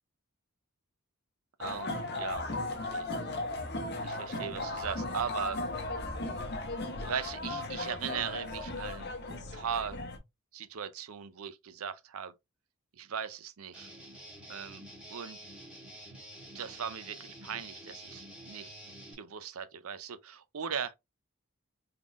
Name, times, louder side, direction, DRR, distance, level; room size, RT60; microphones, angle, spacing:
sound 1, 1.6-10.2, left 2 dB, 50° left, 0.9 m, -36 dB
voice 1, 1.6-1.9 2.2-3.1 4.0-5.6 7.0-10.0 10.5-12.3 12.9-13.9 14.5-14.8 15.1-15.4 16.5-18.7 19.2-21.0, right 7 dB, 75° right, 0.5 m, -38 dB
Guitar, 13.7-19.1, right 1 dB, 5° right, 1.5 m, -49 dB
3.7 x 3.6 x 2.4 m
head